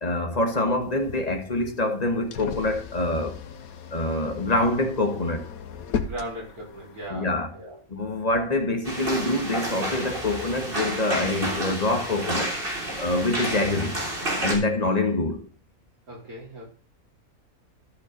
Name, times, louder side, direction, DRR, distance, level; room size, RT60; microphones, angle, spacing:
voice 1, 0.0-3.4 3.9-5.5 7.1-7.5 7.9-12.6 13.0-14.0 14.4-15.4, left 2 dB, 25° left, 1.7 m, -25 dB
sound 1, 0.8-7.1, left 6 dB, 75° left, 1.4 m, -37 dB
voice 2, 6.0-7.8 16.1-16.6, right 1 dB, 85° right, 5.0 m, -38 dB
sound 2, 8.8-14.5, right 1 dB, 40° right, 3.8 m, -30 dB
13.5 x 6.0 x 5.3 m
omnidirectional pair, 1.5 m